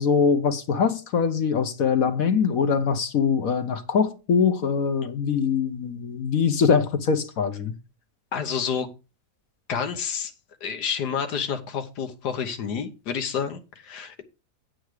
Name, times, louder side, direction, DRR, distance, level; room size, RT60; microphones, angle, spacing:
voice 1, 0.0-7.7, left 6 dB, 65° left, 1.3 m, -23 dB
voice 2, 8.3-8.9 9.7-10.3 10.6-14.2, left 7 dB, 90° left, 1.6 m, -29 dB
8.3 x 7.7 x 4.8 m
omnidirectional pair, 1.7 m